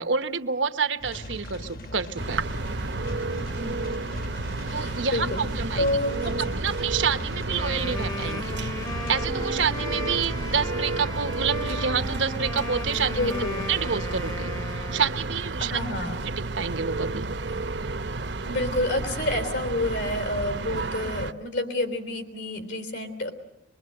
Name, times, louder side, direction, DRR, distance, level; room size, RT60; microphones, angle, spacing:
voice 1, 0.0-2.5 4.7-6.0 6.2-8.6 9.1-13.2 13.7-15.8 16.3-17.3, right 6 dB, 90° right, 9 dB, 1.1 m, -28 dB
sound 1, 1.0-10.7, left 1 dB, 50° left, 1.2 m, -40 dB
sound 2, 2.2-21.3, right 3 dB, 70° right, 0.9 m, -31 dB
voice 2, 4.6-5.5 5.8-6.6 13.1-13.6 15.6-16.2 18.4-23.3, left 1 dB, 80° left, 8 dB, 3.6 m, -29 dB
Wind instrument woodwind instrument, 7.3-15.5, left 2 dB, 20° left, 0.8 m, -37 dB
23.5 x 22.5 x 7.8 m, 0.89 s
head